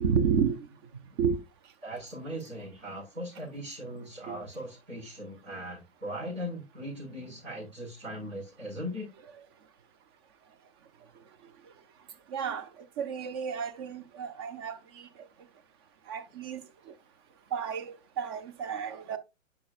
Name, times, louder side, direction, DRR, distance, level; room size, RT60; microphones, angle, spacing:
voice 1, 0.0-0.6 1.2-1.4 4.3-4.4 12.3-12.6 13.0-14.8 16.1-16.6 17.5-17.9 18.2-19.2, right 6 dB, 20° right, 0.5 m, -30 dB
voice 2, 1.8-9.1, equal, 70° right, 5.1 m, -39 dB
9.8 x 5.8 x 2.4 m
figure-of-eight pair, 115°, 40 cm